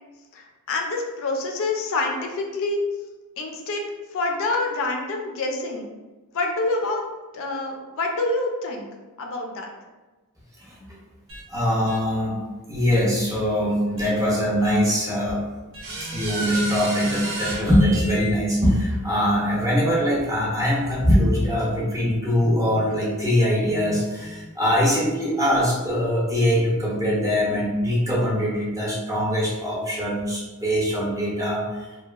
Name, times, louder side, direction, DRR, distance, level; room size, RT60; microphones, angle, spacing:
voice 1, 0.3-2.8 3.4-3.8 4.1-5.9 6.3-7.0 7.3-8.9 9.2-9.7, left 2 dB, 65° left, 1 dB, 0.4 m, -27 dB
voice 2, 10.6-11.0 11.5-12.4 12.7-15.6 16.0-31.9, equal, 15° right, -5 dB, 0.6 m, -22 dB
sound 1, 11.3-11.4 11.9-12.0 12.9-13.0 14.0-14.1 14.6-14.7 15.7-18.3, right 1 dB, 60° right, 0.7 m, -32 dB
2.8 x 2.2 x 2.3 m, 1.2 s
head